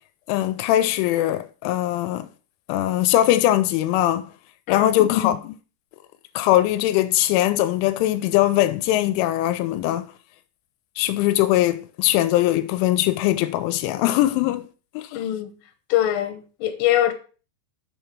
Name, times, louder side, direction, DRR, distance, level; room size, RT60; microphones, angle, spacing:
voice 1, 0.3-2.3 2.7-4.3 4.7-5.5 6.4-10.1 11.0-14.7 15.0-15.1, left 14 dB, 90° left, 3.0 m, -21 dB
voice 2, 4.7-5.3 15.1-15.5 15.9-17.1, left 12 dB, 70° left, 2.9 m, -23 dB
6.8 x 5.6 x 4.5 m
omnidirectional pair, 5.4 m